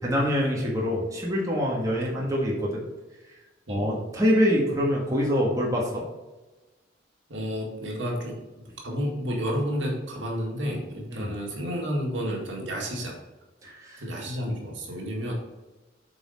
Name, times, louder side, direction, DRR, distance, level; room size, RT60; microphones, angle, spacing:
voice 1, 0.0-2.8 3.7-6.0 11.1-11.3 13.6-14.0, equal, 20° right, -4 dB, 1.7 m, -25 dB
voice 2, 3.7-4.0 7.3-8.4 8.8-13.2 14.0-15.3, equal, 80° right, -1 dB, 2.0 m, -31 dB
8.0 x 4.4 x 4.2 m, 1.1 s
head